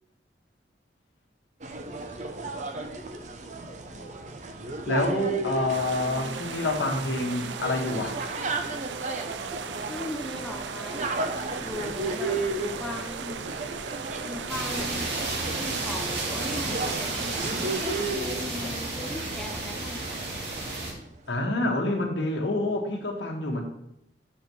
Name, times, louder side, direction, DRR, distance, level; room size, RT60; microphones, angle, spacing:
sound 1, 1.6-20.9, right 2 dB, 40° right, 0.8 m, -34 dB
voice 1, 4.9-8.2 21.3-23.6, left 2 dB, 85° left, 2 dB, 1.5 m, -27 dB
sound 2, 5.7-18.2, right 6 dB, 85° right, 0.6 m, -37 dB
voice 2, 9.9-11.1 11.6-13.4 14.3-15.1 15.7-20.3, left 1 dB, 5° left, 2 dB, 0.8 m, -38 dB
sound 3, 14.5-20.9, right 2 dB, 70° right, 2.3 m, -32 dB
6.8 x 4.7 x 6.9 m, 0.80 s
head